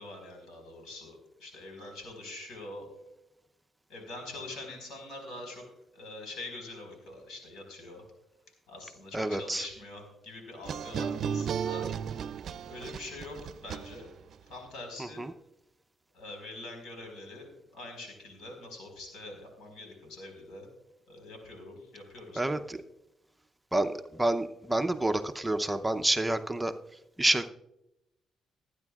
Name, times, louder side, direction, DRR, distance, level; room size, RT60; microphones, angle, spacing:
voice 1, 0.0-2.9 3.9-5.6 5.9-8.1 8.7-11.9 12.7-14.1 14.5-15.3 16.1-20.7 21.1-22.6, left 2 dB, 85° left, 3 dB, 4.5 m, -44 dB
voice 2, 9.1-9.6 15.0-15.3 22.4-22.8 23.7-26.7 27.2-27.5, right 1 dB, 10° right, 8 dB, 0.7 m, -28 dB
Clean Minor Guitar, 10.6-14.3, right 7 dB, 65° right, 0.5 m, -34 dB
22.0 x 9.8 x 2.4 m, 0.89 s
cardioid pair, 90°, 0 cm